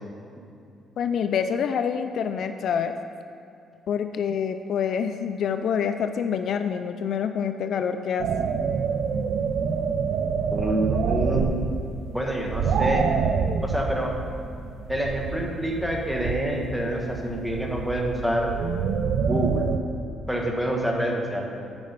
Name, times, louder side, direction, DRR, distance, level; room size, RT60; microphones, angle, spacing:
voice 1, 1.0-2.9 3.9-8.3, left 7 dB, 65° left, 8 dB, 0.4 m, -26 dB
sound 1, 8.2-19.8, right 6 dB, 75° right, 0.5 m, -27 dB
voice 2, 10.5-11.6 12.1-13.1 13.6-14.2 14.9-18.5 19.3-19.7 20.3-21.5, right 1 dB, ahead, -1 dB, 1.4 m, -27 dB
8.9 x 5.2 x 5.5 m, 2.6 s
cardioid pair, 90°, 0 cm